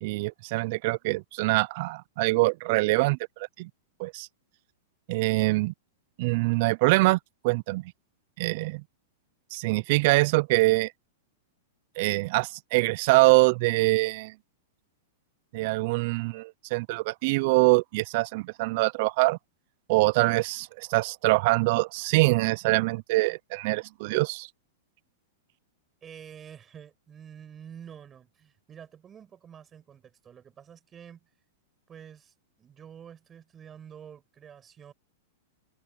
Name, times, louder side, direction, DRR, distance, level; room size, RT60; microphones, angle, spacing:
voice 1, 0.0-3.2 3.6-3.7 4.0-4.3 5.1-5.7 6.2-7.2 7.4-7.9 8.4-8.8 9.5-10.9 12.0-14.3 15.5-19.4 19.9-24.5, right 23 dB, 45° right, 0.3 m, -24 dB
voice 2, 26.0-31.3 31.9-34.9, right 8 dB, 15° right, 7.5 m, -48 dB
supercardioid pair, 165°, 0 cm